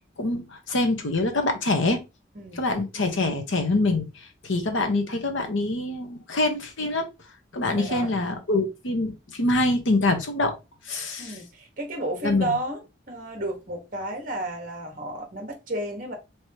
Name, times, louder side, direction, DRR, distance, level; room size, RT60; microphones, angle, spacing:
voice 1, 0.2-2.0 2.6-4.1 4.4-7.1 7.5-10.5 10.9-11.3 12.2-12.5, left 2 dB, 80° left, 1.1 m, -25 dB
voice 2, 2.3-2.8 7.7-8.1 11.2-12.8 13.1-16.2, right 1 dB, 45° right, 1.3 m, -32 dB
4.7 x 3.2 x 2.9 m
head